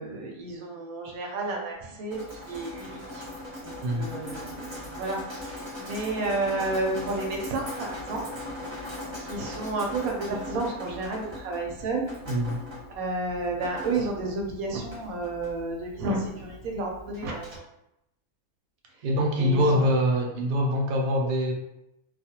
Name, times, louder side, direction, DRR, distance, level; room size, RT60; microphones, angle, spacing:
voice 1, 0.0-3.2 3.6-8.2 9.2-12.1 13.0-17.6 19.4-19.9, right 2 dB, 70° right, 0 dB, 1.0 m, -31 dB
Drip, 2.1-17.5, left 1 dB, 25° right, 0.7 m, -40 dB
voice 2, 12.3-12.6 19.0-21.5, equal, 90° right, 1 dB, 0.5 m, -24 dB
2.7 x 2.4 x 2.8 m, 0.84 s
omnidirectional pair, 1.6 m